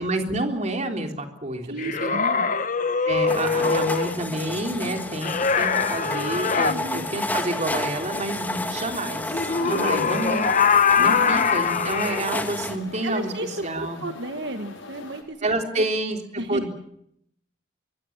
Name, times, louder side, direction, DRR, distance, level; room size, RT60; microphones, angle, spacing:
voice 1, 0.0-1.7 2.0-2.2 3.1-13.3 13.6-14.0 15.4-16.7, right 1 dB, 40° right, 4 dB, 3.7 m, -28 dB
voice 2, 1.6-2.6 6.6-7.1 9.6-10.1 10.9-11.4 13.0-15.5 15.8-16.7, right 1 dB, 65° right, 7 dB, 1.6 m, -34 dB
sound 1, 1.8-4.2 5.2-6.8 9.3-12.2, left 5 dB, 45° left, 1.4 m, -22 dB
sound 2, 3.3-12.8, left 1 dB, 10° left, 2.3 m, -31 dB
sound 3, 4.3-15.2, left 3 dB, 85° left, 6.1 m, -43 dB
24.5 x 22.5 x 7.4 m, 0.72 s
head